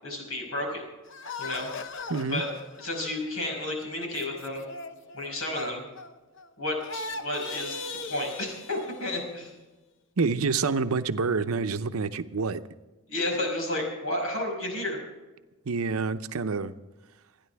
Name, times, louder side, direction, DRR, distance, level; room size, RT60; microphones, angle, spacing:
voice 1, 0.0-0.8 1.4-1.7 2.3-2.5 2.8-4.7 5.1-5.8 6.6-7.8 8.1-9.5 13.1-15.0, left 1 dB, 80° left, 1 dB, 5.5 m, -31 dB
sound 1, 1.1-6.5 6.8-9.3, left 3 dB, 60° left, 0.9 m, -39 dB
voice 2, 2.1-2.4 10.2-12.6 15.7-16.7, right 4 dB, 90° right, 11 dB, 0.7 m, -27 dB
28.5 x 10.5 x 3.5 m, 1.1 s
head